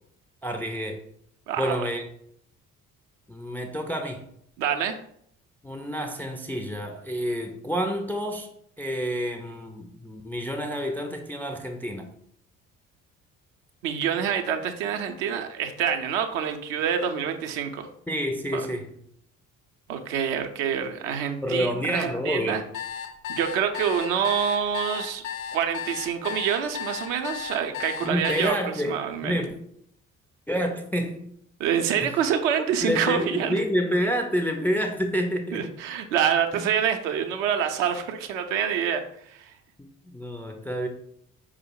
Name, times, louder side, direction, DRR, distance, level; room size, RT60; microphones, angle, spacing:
voice 1, 0.4-1.0 1.6-2.0 3.3-4.2 5.6-8.5 8.8-12.1 18.1-18.9 21.4-22.7 28.0-29.0 29.2-29.6 30.5-31.3 32.0-32.1 32.8-35.7 39.8-39.9 40.1-40.9, equal, 5° left, 4 dB, 0.3 m, -28 dB
voice 2, 1.5-1.9 4.6-5.0 13.8-17.9 18.5-18.7 19.9-22.6 23.3-25.2 25.5-28.5 28.9-29.4 31.6-33.6 35.5-39.5, right 8 dB, 65° right, 6 dB, 0.6 m, -26 dB
sound 1, 22.7-28.5, left 8 dB, 75° left, 0.6 m, -34 dB
4.7 x 2.0 x 4.4 m, 0.68 s
figure-of-eight pair, 45°, 42 cm